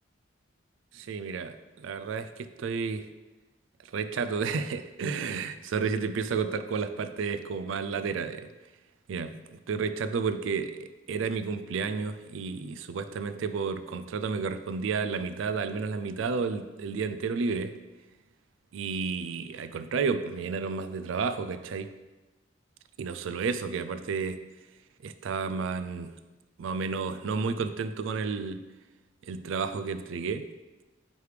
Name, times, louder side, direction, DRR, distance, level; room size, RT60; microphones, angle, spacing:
voice 1, 1.1-3.1 3.9-8.5 9.1-17.8 18.7-21.9 23.0-24.4 25.0-26.1 26.6-28.6 29.3-30.5, right 5 dB, 70° right, 11 dB, 0.4 m, -31 dB
9.3 x 3.3 x 3.2 m, 1.1 s
head